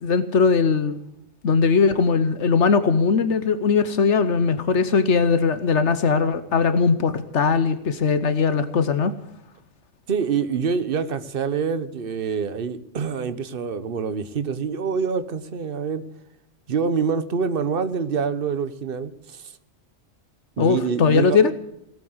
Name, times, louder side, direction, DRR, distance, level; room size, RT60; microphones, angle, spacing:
voice 1, 0.0-1.0 1.4-9.1 20.6-21.5, left 5 dB, 75° left, 12 dB, 1.2 m, -20 dB
voice 2, 10.1-16.0 16.7-19.5 20.6-21.4, right 6 dB, 50° right, 12 dB, 1.2 m, -26 dB
18.5 x 8.7 x 8.0 m, 0.81 s
omnidirectional pair, 1.2 m